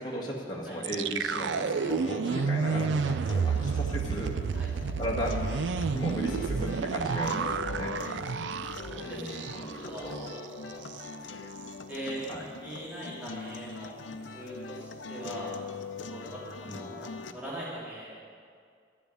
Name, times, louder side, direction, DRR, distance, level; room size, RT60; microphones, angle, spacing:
voice 1, 0.0-4.4 5.0-5.4 5.9-7.9 8.9-10.3 12.3-12.4 16.6-17.4, equal, 25° left, -3 dB, 1.8 m, -36 dB
sound 1, 0.8-9.9 10.2-10.3 10.7-11.1, right 5 dB, 75° right, 0.4 m, -30 dB
sound 2, 1.3-17.3, left 4 dB, 90° left, 0.7 m, -42 dB
voice 2, 3.2-3.9 4.5-4.7 8.8-9.5 9.8-11.4 11.9-15.5 16.1-18.2, right 1 dB, 10° right, -8 dB, 3.1 m, -42 dB
11.0 x 7.1 x 9.3 m, 2.2 s
head